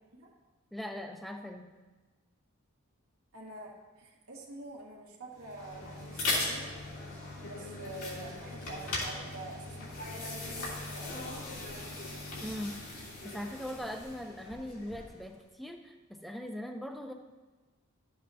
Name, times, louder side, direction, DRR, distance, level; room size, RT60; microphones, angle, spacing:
voice 1, 0.7-1.7 12.4-12.8 13.2-17.1, left 1 dB, ahead, 4 dB, 0.5 m, -40 dB
voice 2, 3.3-6.7 7.5-11.2, right 2 dB, 85° right, -3 dB, 1.6 m, -47 dB
sound 1, 5.4-15.2, left 2 dB, 80° left, 3.0 m, -39 dB
12.0 x 7.6 x 2.7 m, 1.3 s
head